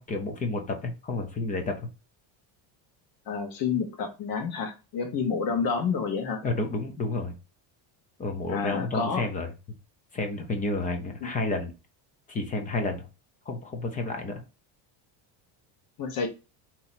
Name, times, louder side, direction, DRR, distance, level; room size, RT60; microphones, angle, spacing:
voice 1, 0.0-1.9 6.4-7.4 8.2-9.5 10.1-11.7 12.3-13.1 13.5-14.4, left 2 dB, 20° left, 5 dB, 0.4 m, -30 dB
voice 2, 3.3-6.4 8.5-9.2 11.2-11.3 16.0-16.3, left 5 dB, 45° left, 5 dB, 1.1 m, -29 dB
4.3 x 2.9 x 4.0 m, 0.30 s
cardioid pair, 175°, 49 cm